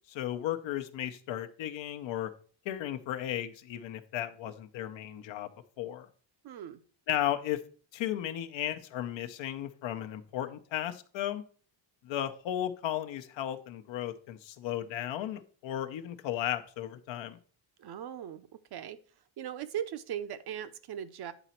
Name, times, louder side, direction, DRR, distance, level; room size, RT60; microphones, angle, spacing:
voice 1, 0.1-2.3 2.6-5.5 5.8-6.1 7.1-7.6 7.9-11.4 12.0-17.4, left 12 dB, 75° left, 7 dB, 0.9 m, -35 dB
voice 2, 6.4-6.8 17.8-19.0 19.4-21.3, right 10 dB, 55° right, 12 dB, 0.7 m, -39 dB
9.0 x 4.1 x 4.3 m, 0.42 s
cardioid pair, 110°, 45 cm